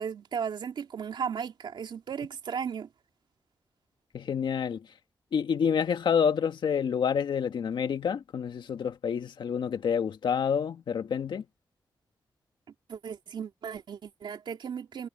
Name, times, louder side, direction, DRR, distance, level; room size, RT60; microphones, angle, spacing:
voice 1, 0.0-2.9 12.9-15.1, right 7 dB, 85° right, 3.1 m, -35 dB
voice 2, 4.1-4.8 5.3-11.4, left 7 dB, 85° left, 1.9 m, -28 dB
wide cardioid pair, 130°, 8 cm